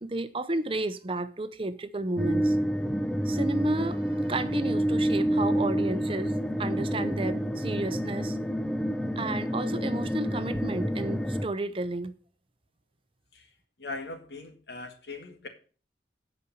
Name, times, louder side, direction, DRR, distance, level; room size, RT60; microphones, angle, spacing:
voice 1, 0.0-2.6 3.3-6.3 6.6-8.4 9.2-12.1, right 2 dB, 30° right, 0.7 m, -32 dB
sound 1, 2.2-11.5, equal, 5° left, 0.5 m, -28 dB
voice 2, 13.8-15.5, left 3 dB, 70° left, 1.9 m, -40 dB
9.6 x 5.3 x 7.0 m
head